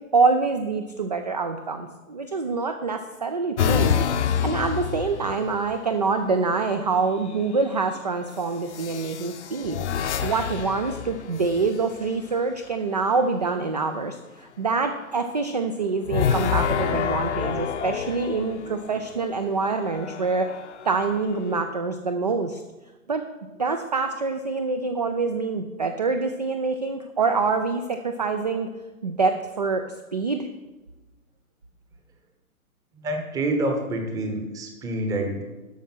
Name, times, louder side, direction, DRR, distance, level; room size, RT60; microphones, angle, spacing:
voice 1, 0.0-3.9 4.3-9.8 10.2-20.5 20.8-22.6 23.1-23.3 23.6-28.7 29.0-29.9 30.1-30.5, right 4 dB, 30° right, 7 dB, 0.4 m, -25 dB
sound 1, 3.6-5.8 7.1-7.6 8.7-12.1 16.1-19.0 19.7-21.6, left 8 dB, 50° left, 0.8 m, -28 dB
voice 2, 33.0-35.4, right 1 dB, 10° right, 4 dB, 0.8 m, -27 dB
12.0 x 5.3 x 5.9 m, 1.1 s
figure-of-eight pair, 135°, 44 cm